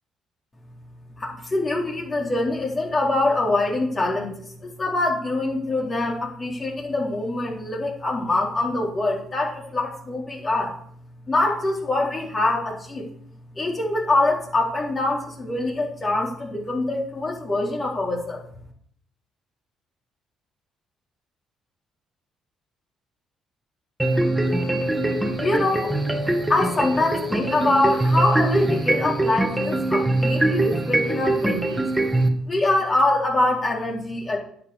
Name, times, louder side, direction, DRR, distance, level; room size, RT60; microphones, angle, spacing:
voice 1, 1.2-10.7 11.3-13.1 13.6-18.4 25.4-25.9 26.5-31.9 32.5-34.4, left 2 dB, 35° left, -2 dB, 4.2 m, -24 dB
sound 1, 24.0-32.3, right 2 dB, 10° right, 1.9 m, -23 dB
10.5 x 6.2 x 6.5 m, 0.63 s
supercardioid pair, 65°, 0 cm